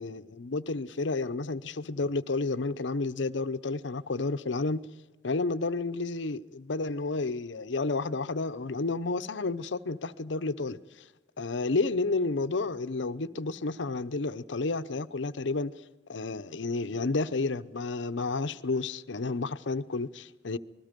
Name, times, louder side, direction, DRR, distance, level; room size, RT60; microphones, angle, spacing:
voice 1, 0.0-4.8 5.2-11.0 11.4-15.7 16.1-20.6, left 3 dB, 80° left, 0.8 m, -31 dB
26.0 x 21.0 x 5.2 m
head